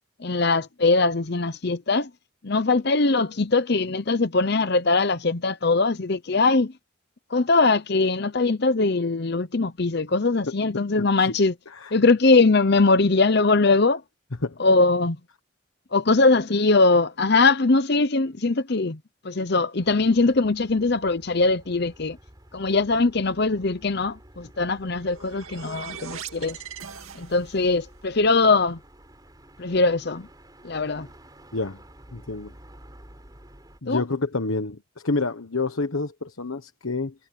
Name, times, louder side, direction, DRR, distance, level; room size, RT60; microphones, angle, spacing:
voice 1, 0.2-2.1 2.4-6.7 7.3-11.5 11.9-14.0 14.6-15.2 15.9-19.0 19.2-22.2 22.5-26.6 27.1-28.8 29.6-30.3 30.6-31.1 33.9-34.0, left 3 dB, 50° left, 0.8 m, -21 dB
voice 2, 11.0-11.3 11.7-11.9 14.4-14.6 31.5-31.8 32.1-32.5 33.8-37.1, left 3 dB, 80° left, 1.3 m, -28 dB
sound 1, 19.8-33.8, right 1 dB, 20° right, 5.7 m, -51 dB
sound 2, 24.7-27.7, right 7 dB, 75° right, 2.3 m, -40 dB
head